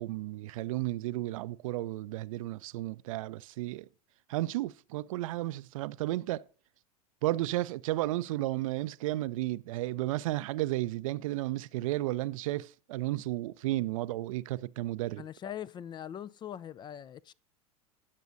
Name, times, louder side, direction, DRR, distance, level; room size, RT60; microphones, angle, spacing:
voice 1, 0.0-3.9 4.3-6.5 7.2-15.2, right 16 dB, 60° right, 0.5 m, -33 dB
voice 2, 15.2-17.3, left 10 dB, 25° left, 0.3 m, -41 dB
17.0 x 7.0 x 2.6 m
hypercardioid pair, 85°, 19 cm